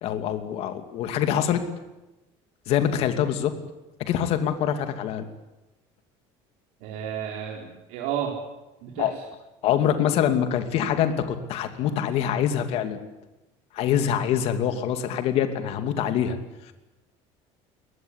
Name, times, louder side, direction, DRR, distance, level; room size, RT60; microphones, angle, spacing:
voice 1, 0.0-1.6 2.7-3.5 4.0-5.2 9.0-9.2 9.6-13.0 13.7-16.4, left 9 dB, 55° left, 8 dB, 2.6 m, -24 dB
voice 2, 6.8-8.3 8.8-9.1, right 9 dB, 80° right, 0 dB, 4.3 m, -31 dB
23.0 x 19.0 x 10.0 m, 1.0 s
cardioid pair, 165°, 13 cm